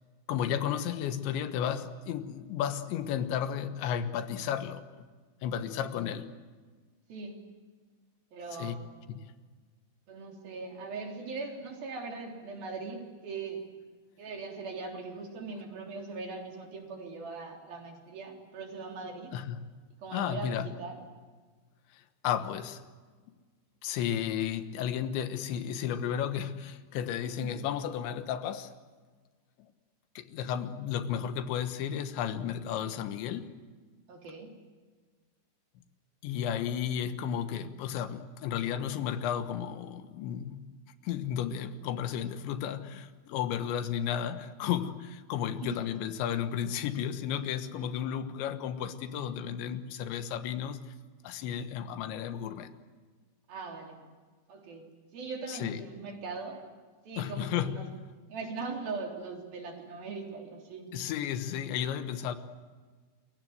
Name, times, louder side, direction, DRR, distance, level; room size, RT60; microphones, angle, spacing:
voice 1, 0.3-5.1 5.4-6.3 8.6-8.8 9.1-9.3 19.3-19.6 20.1-20.7 21.9-22.8 23.8-28.7 30.2-33.5 36.2-40.7 41.0-50.8 51.2-52.7 55.5-55.8 57.2-57.7 60.9-62.4, left 9 dB, 85° left, 10 dB, 3.6 m, -33 dB
voice 2, 8.3-8.9 10.1-13.6 14.2-19.3 20.0-21.0 27.3-27.6 34.1-34.5 45.6-45.9 53.5-54.1 54.5-56.6 57.0-57.9 58.3-60.9, right 4 dB, 55° right, 2 dB, 5.2 m, -40 dB
28.0 x 22.5 x 8.0 m, 1.5 s
omnidirectional pair, 5.1 m